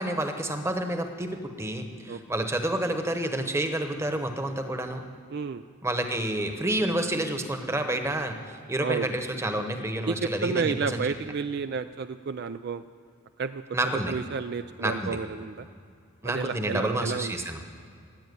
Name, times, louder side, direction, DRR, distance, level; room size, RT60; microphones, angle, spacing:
voice 1, 0.0-5.0 5.8-11.0 13.7-14.1 14.8-15.2 16.2-17.6, right 1 dB, 15° right, 6 dB, 1.1 m, -29 dB
voice 2, 5.3-5.6 8.8-9.1 10.1-12.8 13.4-13.6 14.1-15.7 16.2-17.3, right 5 dB, 50° right, 11 dB, 0.4 m, -31 dB
15.5 x 8.9 x 9.4 m, 2.3 s
head